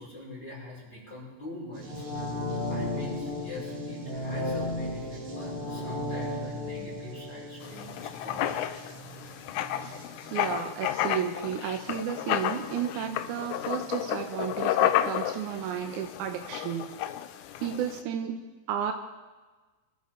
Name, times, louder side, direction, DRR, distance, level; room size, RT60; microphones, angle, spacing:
voice 1, 0.0-2.0 2.7-8.6, left 1 dB, 30° left, -6 dB, 6.5 m, -43 dB
sound 1, 1.7-13.9, right 5 dB, 55° right, 3.2 m, -49 dB
sound 2, 1.8-8.6 9.0-9.1, left 2 dB, 55° left, 0.6 m, -34 dB
Writing, 7.6-18.0, left 12 dB, 80° left, 1.8 m, -31 dB
voice 2, 10.3-17.0 17.6-18.9, right 9 dB, 75° right, 5 dB, 1.9 m, -33 dB
25.5 x 13.5 x 3.8 m, 1.3 s
omnidirectional pair, 4.2 m